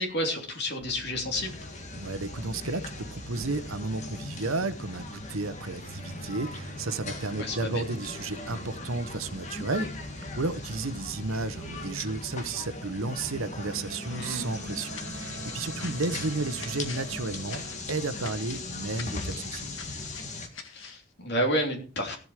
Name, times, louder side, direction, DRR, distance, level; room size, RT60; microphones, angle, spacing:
voice 1, 0.0-1.6 7.4-7.8 14.1-14.5 20.7-22.2, equal, 50° left, 2 dB, 3.1 m, -30 dB
sound 1, 0.8-17.8, right 2 dB, 50° right, 1.1 m, -46 dB
sound 2, 1.3-20.5, left 2 dB, 35° left, 1.8 m, -39 dB
voice 2, 2.0-9.9 10.3-17.6 17.9-19.7, right 3 dB, 80° right, 13 dB, 1.0 m, -33 dB
sound 3, 14.9-21.0, left 6 dB, 70° left, 1.7 m, -46 dB
16.0 x 7.9 x 4.9 m, 0.36 s
head